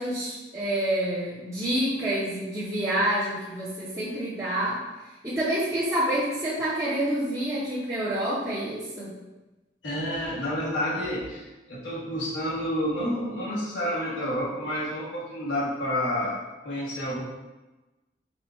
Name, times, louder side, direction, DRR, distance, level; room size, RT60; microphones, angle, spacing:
voice 1, 0.0-4.8 5.2-9.1, right 1 dB, 15° right, -12 dB, 0.9 m, -28 dB
voice 2, 9.8-17.2, equal, 90° left, -8 dB, 1.3 m, -29 dB
4.6 x 2.5 x 4.3 m, 1.1 s
head